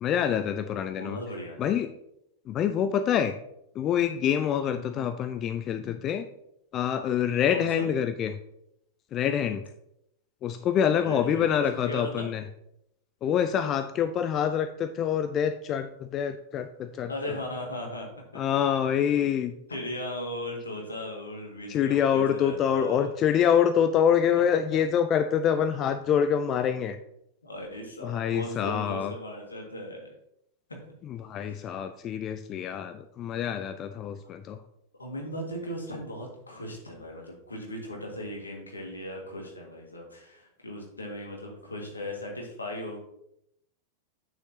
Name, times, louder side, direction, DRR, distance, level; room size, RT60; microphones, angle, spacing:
voice 1, 0.0-1.2 1.6-1.9 2.5-3.4 3.8-6.2 6.7-8.4 9.1-9.6 10.4-12.4 13.2-17.1 18.3-19.5 21.7-27.0 28.0-29.1 31.1-34.6, left 8 dB, 30° left, 10 dB, 0.4 m, -26 dB
voice 2, 0.9-1.8 4.7-5.0 7.5-7.8 10.9-12.3 17.1-18.4 19.0-19.1 19.7-23.1 27.4-30.1 30.7-30.8 31.3-31.8 35.0-43.0, left 1 dB, 75° left, 0 dB, 1.8 m, -38 dB
9.0 x 6.5 x 2.8 m, 0.77 s
figure-of-eight pair, 90°, 0 cm